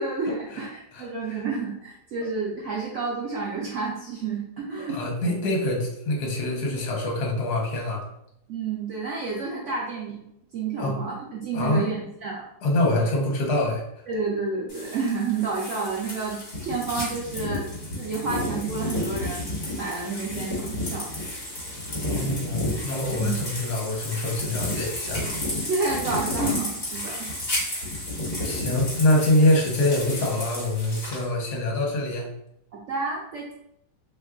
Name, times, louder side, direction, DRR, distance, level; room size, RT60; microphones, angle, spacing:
voice 1, 0.0-5.1 8.5-10.2 10.5-12.5 14.1-21.1 23.2-23.5 25.7-27.3 32.7-33.5, right 4 dB, 80° right, -3 dB, 0.6 m, -30 dB
voice 2, 0.9-1.4 4.9-8.0 10.8-11.0 11.5-11.9 12.6-14.0 22.1-25.2 28.4-32.3, left 1 dB, 65° left, 0 dB, 1.3 m, -25 dB
sound 1, 14.7-31.2, left 1 dB, 40° left, 1.5 m, -32 dB
3.0 x 2.3 x 3.5 m, 0.77 s
omnidirectional pair, 1.9 m